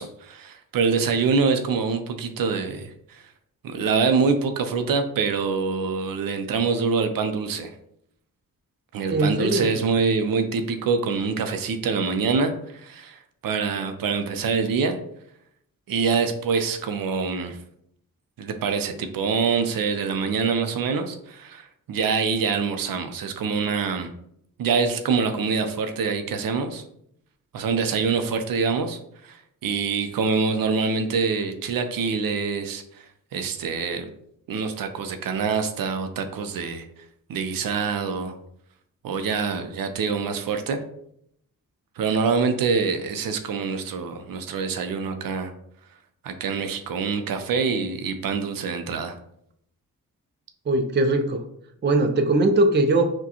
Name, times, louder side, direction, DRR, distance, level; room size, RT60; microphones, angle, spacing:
voice 1, 0.0-3.2 3.6-7.7 8.9-15.0 15.9-17.6 18.4-24.1 24.6-26.8 27.5-33.0 33.3-34.1 34.5-36.9 37.3-38.3 39.0-40.8 42.0-45.5 46.2-49.2, right 5 dB, 80° right, 7 dB, 0.5 m, -25 dB
voice 2, 9.1-9.8 50.7-51.4 51.8-53.1, right 2 dB, 30° right, 6 dB, 0.4 m, -21 dB
6.0 x 2.2 x 2.9 m, 0.72 s
wide cardioid pair, 135°, 34 cm